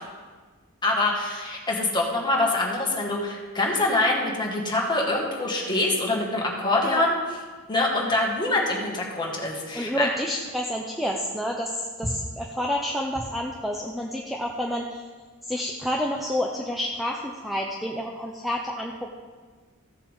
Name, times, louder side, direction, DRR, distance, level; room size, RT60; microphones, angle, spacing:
voice 1, 0.8-7.2 7.7-10.1, left 2 dB, 20° left, -2 dB, 1.8 m, -25 dB
voice 2, 9.7-15.0 15.5-19.2, equal, ahead, -1 dB, 0.7 m, -29 dB
15.0 x 7.3 x 3.7 m, 1.4 s
head